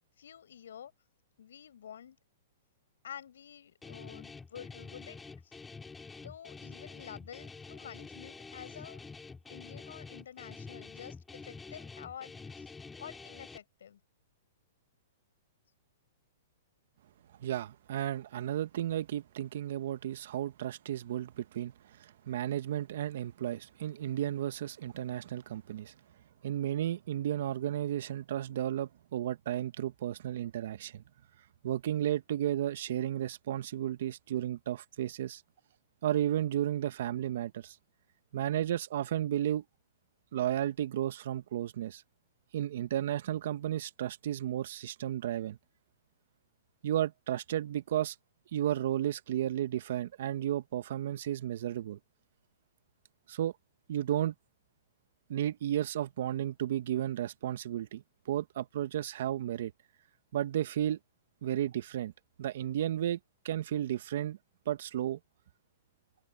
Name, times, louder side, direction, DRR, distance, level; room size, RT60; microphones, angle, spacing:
voice 1, 0.2-0.9 1.4-2.2 3.0-5.6 6.2-9.1 9.5-12.7 13.0-14.0, left 9 dB, 75° left, 4.8 m, -49 dB
Guitar, 3.8-13.6, left 4 dB, 10° left, 4.4 m, -47 dB
voice 2, 17.4-25.9 26.4-31.0 31.6-35.4 36.0-37.8 38.3-39.6 40.3-42.0 42.5-45.6 46.8-48.2 48.5-52.0 53.3-53.5 53.9-54.3 55.3-59.7 60.3-61.0 61.4-62.1 62.4-63.2 63.4-64.4 64.6-65.2, right 11 dB, 65° right, 1.4 m, -33 dB
hypercardioid pair, 125°, 0 cm